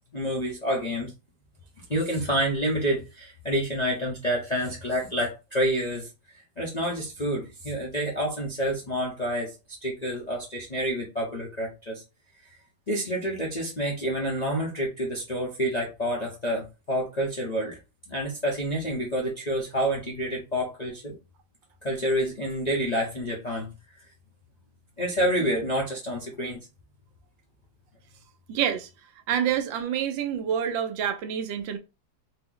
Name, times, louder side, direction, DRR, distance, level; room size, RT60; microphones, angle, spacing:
voice 1, 0.1-1.1 1.9-6.1 6.6-12.0 12.5-12.6 12.9-17.8 18.1-21.2 21.8-23.7 25.0-26.6, equal, 50° left, 0.5 m, -28 dB
voice 2, 28.5-28.9 29.3-31.8, right 9 dB, 90° right, 1.4 m, -27 dB
4.2 x 2.0 x 3.8 m
omnidirectional pair, 2.0 m